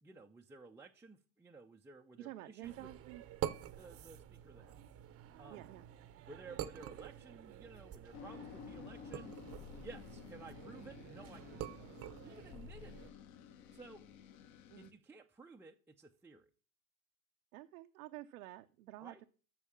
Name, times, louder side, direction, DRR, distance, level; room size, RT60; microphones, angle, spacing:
voice 1, 0.0-2.9 3.7-4.8 5.4-5.6 6.3-9.4 9.7-11.7 12.2-13.1 13.7-14.0 14.8-16.5 19.0-19.2, right 3 dB, 5° right, 1 dB, 0.5 m, -55 dB
voice 2, 2.2-3.2 5.5-5.9 14.7-14.9 17.5-19.3, right 15 dB, 75° right, 6 dB, 0.8 m, -50 dB
sound 1, 2.6-13.1, right 11 dB, 30° right, 0.8 m, -47 dB
sound 2, 8.1-14.9, left 8 dB, 55° left, 1.4 m, -53 dB
8.5 x 6.4 x 7.2 m, 0.40 s
hypercardioid pair, 110°, 44 cm